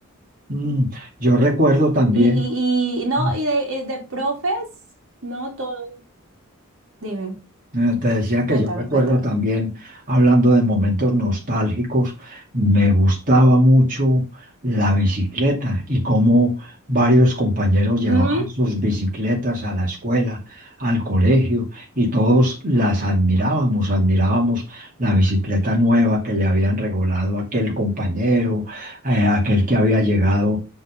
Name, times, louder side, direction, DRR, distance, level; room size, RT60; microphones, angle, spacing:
voice 1, 0.5-2.4 3.1-3.3 7.7-14.2 14.6-30.6, equal, 40° right, -2 dB, 2.7 m, -19 dB
voice 2, 2.1-4.7 5.2-5.9 7.0-7.3 8.5-9.2 18.1-18.5, right 2 dB, 65° right, 1 dB, 2.9 m, -24 dB
8.1 x 4.6 x 5.2 m, 0.30 s
head